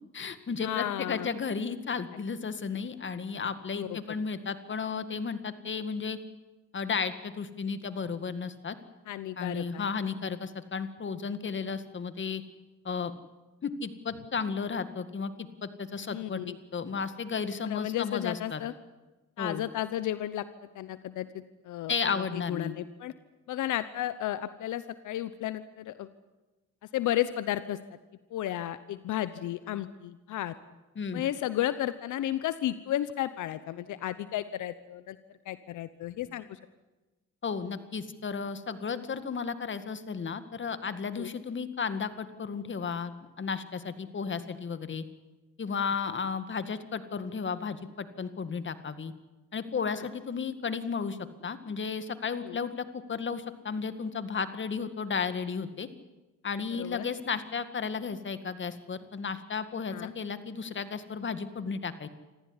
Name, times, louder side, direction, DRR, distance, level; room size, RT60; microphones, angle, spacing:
voice 1, 0.0-6.2 6.7-8.8 9.4-12.4 12.8-13.1 13.6-18.6 19.4-19.6 21.9-22.7 31.0-31.2 37.4-45.1 45.6-49.1 49.5-55.9 56.4-62.1, left 5 dB, 40° left, 11 dB, 2.0 m, -34 dB
voice 2, 0.6-1.3 3.7-4.2 9.1-9.8 10.2-10.4 16.1-16.6 17.6-18.7 19.4-20.5 20.7-23.1 23.5-26.1 26.9-27.8 28.3-30.5 31.1-35.2 35.4-36.6 41.1-41.3 52.4-52.6 56.7-57.1 59.9-60.1, left 13 dB, 80° left, 14 dB, 1.0 m, -33 dB
26.5 x 15.0 x 9.8 m, 1.1 s
cardioid pair, 90°, 30 cm